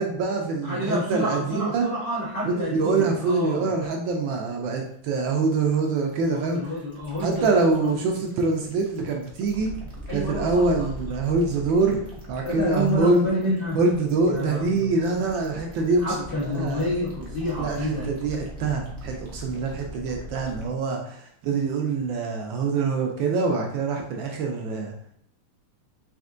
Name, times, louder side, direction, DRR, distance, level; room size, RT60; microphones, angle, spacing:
voice 1, 0.0-1.9 2.4-6.6 7.2-9.7 10.1-12.0 12.3-13.2 13.7-16.8 17.6-24.9, right 3 dB, 75° right, 1 dB, 1.2 m, -25 dB
voice 2, 0.6-3.7 6.3-7.9 10.1-10.9 12.4-13.8 14.3-14.9 16.0-18.1, equal, 70° left, -7 dB, 0.5 m, -29 dB
sound 1, 4.3-20.7, equal, 30° right, 0.6 m, -41 dB
4.3 x 3.5 x 2.5 m, 0.67 s
omnidirectional pair, 2.4 m